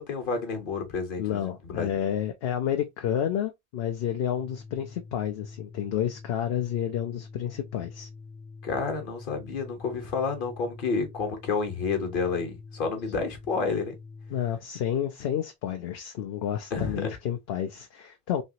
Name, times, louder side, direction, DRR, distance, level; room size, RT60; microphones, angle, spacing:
voice 1, 0.0-1.9 8.6-13.9 16.7-17.1, left 4 dB, 55° left, 1.2 m, -30 dB
voice 2, 1.2-8.1 14.3-18.4, left 10 dB, 70° left, 0.8 m, -30 dB
Organ, 4.3-14.6, left 4 dB, 15° left, 0.5 m, -46 dB
3.2 x 2.9 x 2.7 m
omnidirectional pair, 1.1 m